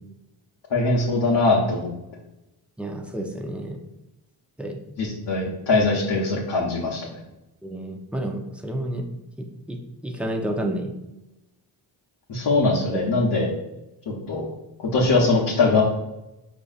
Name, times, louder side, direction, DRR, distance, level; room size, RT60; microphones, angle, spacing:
voice 1, 0.7-1.9 5.0-7.1 12.3-13.5 14.1-14.5 14.8-15.8, left 3 dB, 55° left, -5 dB, 1.0 m, -21 dB
voice 2, 2.8-3.8 4.6-4.8 7.6-9.0 9.4-11.0 12.9-13.0, right 1 dB, 5° right, 2 dB, 0.6 m, -30 dB
4.8 x 2.7 x 2.4 m, 0.96 s
cardioid pair, 50°, 49 cm